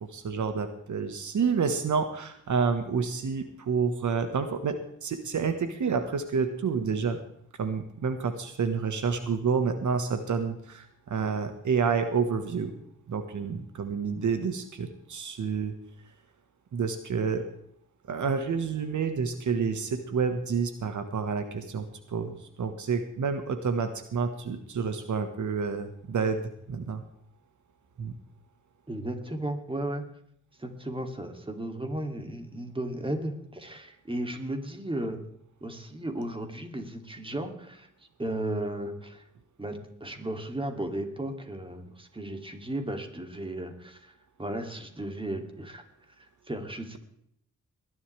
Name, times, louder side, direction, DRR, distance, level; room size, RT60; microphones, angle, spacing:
voice 1, 0.0-7.2 7.6-12.7 13.1-15.7 16.7-17.5 18.1-26.4 26.7-27.0 28.0-28.1, right 5 dB, 70° right, 8 dB, 1.5 m, -29 dB
voice 2, 28.9-30.1 30.6-35.2 35.6-37.9 38.2-39.3 39.6-44.1 44.4-45.8 46.2-47.0, right 1 dB, 15° right, 6 dB, 2.7 m, -35 dB
21.0 x 11.5 x 3.4 m, 0.70 s
cardioid pair, 70°, 31 cm